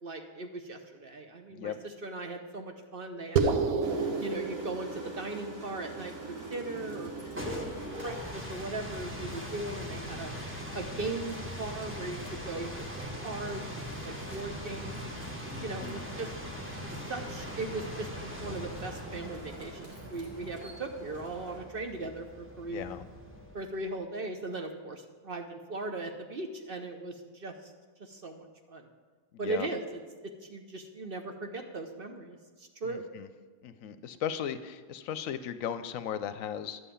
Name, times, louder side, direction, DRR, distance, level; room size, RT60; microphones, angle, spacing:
voice 1, 0.0-3.5 4.2-7.8 8.0-10.3 10.7-15.1 15.6-16.3 16.9-22.9 23.5-27.7 28.0-28.9 29.4-33.1, right 2 dB, 50° right, 5 dB, 0.8 m, -38 dB
sound 1, 3.4-8.1, right 4 dB, 80° right, 1.2 m, -32 dB
sound 2, 3.8-21.6, right 2 dB, 65° right, 2.7 m, -50 dB
sound 3, 7.1-23.8, equal, 10° right, 1.3 m, -41 dB
voice 2, 15.5-16.1 22.7-23.0 29.4-29.7 32.8-33.3 33.6-36.8, left 9 dB, 75° left, 12 dB, 0.9 m, -37 dB
11.5 x 5.6 x 8.4 m, 1.4 s
omnidirectional pair, 1.5 m